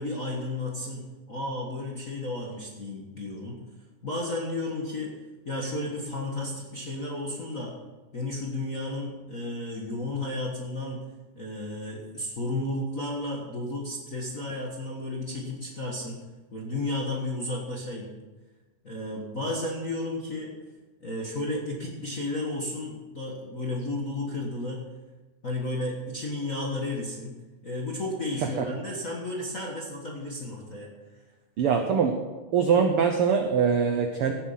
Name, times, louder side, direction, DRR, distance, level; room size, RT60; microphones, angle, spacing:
voice 1, 0.0-3.6 4.0-5.1 5.4-7.7 8.1-11.0 11.3-16.2 16.5-18.1 18.8-20.5 21.0-24.8 25.4-27.3 27.6-31.2, left 2 dB, 45° left, -3 dB, 1.1 m, -33 dB
voice 2, 31.6-32.1 32.5-34.3, right 6 dB, 85° right, 5 dB, 1.2 m, -23 dB
17.0 x 7.5 x 5.8 m, 1.2 s
omnidirectional pair, 3.8 m